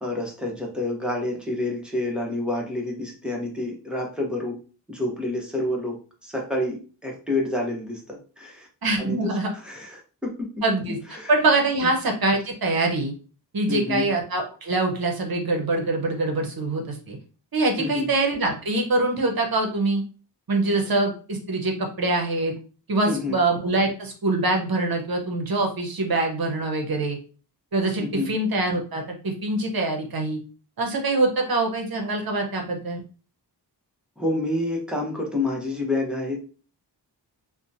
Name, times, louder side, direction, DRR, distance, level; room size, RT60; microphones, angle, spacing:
voice 1, 0.0-4.6 4.9-8.7 9.0-9.2 9.6-10.5 11.1-11.3 13.7-14.0 17.8-18.1 23.0-23.4 28.0-28.3 34.2-36.4, left 2 dB, ahead, -1 dB, 0.8 m, -28 dB
voice 2, 8.8-9.5 10.6-13.1 13.5-17.2 17.5-20.0 20.5-22.5 22.9-27.2 27.7-30.4 30.8-33.0, right 2 dB, 55° right, 2 dB, 0.8 m, -24 dB
2.8 x 2.2 x 2.5 m, 0.37 s
wide cardioid pair, 75°, 43 cm